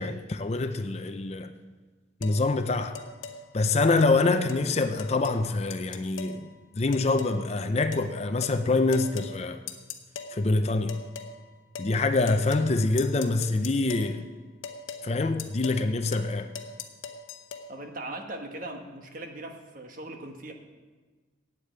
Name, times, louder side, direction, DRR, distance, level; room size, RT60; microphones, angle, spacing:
voice 1, 0.0-1.5 2.2-3.0 3.5-6.5 6.7-9.6 10.3-11.0 11.8-14.3 15.0-16.5, left 3 dB, 35° left, 8 dB, 0.5 m, -25 dB
sound 1, 2.2-2.4 3.0-3.4 4.0-4.2 4.5-4.6 5.0-5.4 5.7-6.4 6.9-7.4 7.9-8.1 8.4-8.6 8.9-9.3 9.7-10.3 10.9-11.3 11.8-11.9 12.3-12.7 13.0-14.1 14.6-15.1 15.4-15.8 16.1-16.3 16.6-17.7, left 6 dB, 90° left, 1.0 m, -39 dB
voice 2, 17.7-20.5, right 1 dB, 45° right, 5 dB, 1.2 m, -39 dB
8.3 x 8.3 x 8.8 m, 1.3 s
head